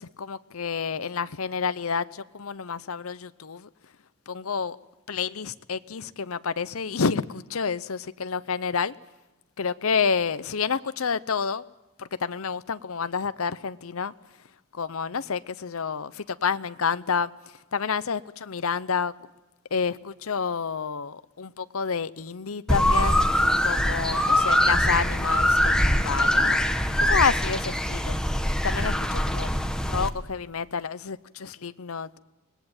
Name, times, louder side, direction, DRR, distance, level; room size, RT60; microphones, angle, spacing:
voice 1, 0.0-3.7 4.3-4.8 5.1-8.9 9.6-11.6 12.0-14.1 14.7-17.3 17.7-19.1 19.7-26.6 27.0-28.2 28.6-29.5 29.9-32.2, left 5 dB, 75° left, 0.8 m, -29 dB
sound 1, 22.7-30.1, left 1 dB, 5° left, 1.2 m, -23 dB
25.5 x 19.5 x 8.9 m
head